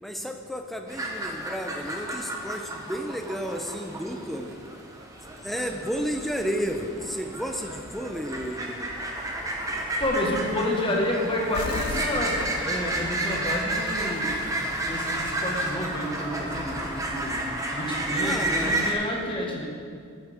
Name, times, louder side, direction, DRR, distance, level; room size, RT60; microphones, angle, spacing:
voice 1, 0.0-4.6 5.4-8.8 18.2-18.9, equal, ahead, 4 dB, 0.6 m, -32 dB
sound 1, 0.9-18.9, right 1 dB, 15° right, 1.1 m, -31 dB
voice 2, 10.0-17.4 17.7-19.7, left 1 dB, 25° left, -2 dB, 1.5 m, -29 dB
sound 2, 11.5-13.4, left 6 dB, 80° left, 0.4 m, -36 dB
13.0 x 9.3 x 3.6 m, 2.2 s
head